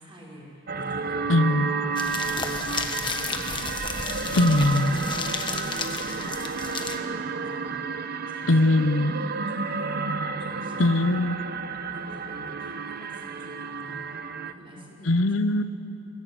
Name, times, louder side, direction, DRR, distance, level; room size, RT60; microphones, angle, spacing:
voice 1, 0.0-4.6 5.0-6.3 6.6-10.1 10.4-11.2 11.9-14.1 14.4-15.3, equal, 25° right, -3 dB, 5.3 m, -46 dB
sound 1, 0.7-14.5, right 4 dB, 50° right, 0.8 m, -31 dB
voice 2, 1.3-1.7 4.3-5.0 8.5-9.1 10.8-11.4 15.1-15.6, left 2 dB, 70° left, 11 dB, 0.8 m, -21 dB
sound 2, 2.0-7.0, left 4 dB, 25° left, 1.3 m, -33 dB
21.5 x 17.5 x 8.8 m, 2.8 s
head